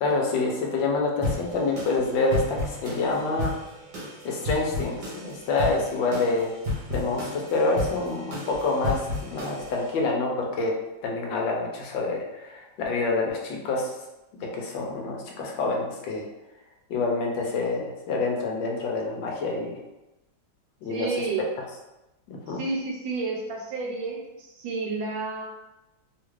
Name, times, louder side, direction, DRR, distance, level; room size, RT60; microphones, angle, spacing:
voice 1, 0.0-3.5 4.2-6.5 6.9-10.7 11.0-13.9 14.4-16.3 16.9-19.7 20.8-21.3 22.3-22.6, left 3 dB, 85° left, 0 dB, 1.4 m, -27 dB
sound 1, 1.2-9.9, left 2 dB, 65° right, 1.5 m, -33 dB
voice 2, 20.9-21.4 22.5-25.5, right 3 dB, 85° right, -2 dB, 1.4 m, -31 dB
3.6 x 2.4 x 3.0 m, 0.98 s
omnidirectional pair, 2.0 m